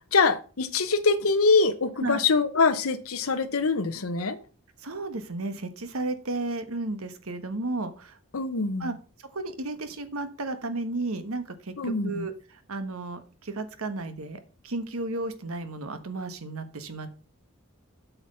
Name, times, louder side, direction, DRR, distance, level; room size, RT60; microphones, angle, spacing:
voice 1, 0.1-4.4 8.3-8.9 11.8-12.3, left 4 dB, 80° left, 0.8 m, -24 dB
voice 2, 4.8-8.2 8.8-8.9 9.2-17.2, right 2 dB, 80° right, 1.3 m, -33 dB
8.0 x 5.8 x 5.5 m
head